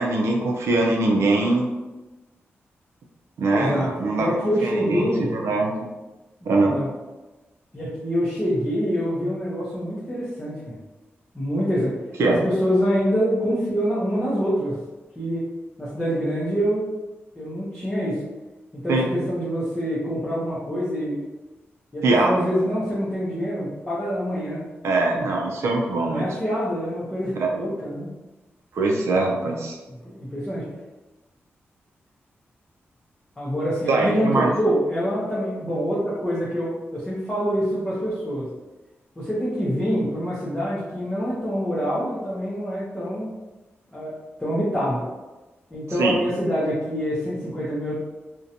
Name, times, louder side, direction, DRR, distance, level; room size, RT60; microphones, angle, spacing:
voice 1, 0.0-1.7 3.4-5.7 6.5-6.8 12.2-12.4 18.9-19.2 22.0-22.5 24.8-26.2 27.4-27.5 28.7-29.8 33.9-34.5 46.0-46.2, right 2 dB, 90° right, 0 dB, 0.4 m, -22 dB
voice 2, 3.5-5.4 6.4-6.9 7.7-10.8 11.3-12.0 12.3-14.8 15.2-16.9 17.4-18.2 18.7-21.2 21.9-24.7 25.1-25.3 26.1-28.1 29.9-30.7 33.4-38.5 39.2-43.3 43.9-45.1 45.7-48.0, equal, 15° left, -8 dB, 0.5 m, -26 dB
2.5 x 2.1 x 2.7 m, 1.1 s
wide cardioid pair, 170°, 5 cm